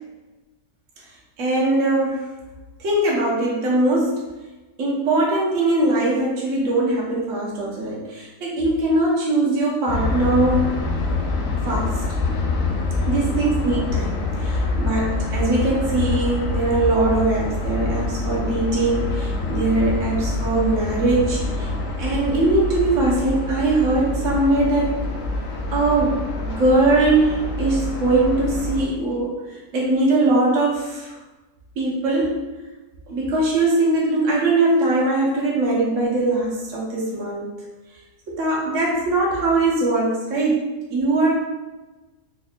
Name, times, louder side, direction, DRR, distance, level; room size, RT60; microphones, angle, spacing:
voice 1, 1.4-2.3 2.8-4.2 4.8-10.8 11.6-12.0 13.1-21.7 22.0-24.9 25.7-31.1 31.8-32.4 33.1-37.5 38.3-41.3, right 2 dB, 55° right, -4 dB, 1.2 m, -21 dB
sound 1, 9.9-28.8, left 3 dB, 65° left, 0.9 m, -26 dB
4.0 x 3.6 x 2.4 m, 1.2 s
omnidirectional pair, 1.7 m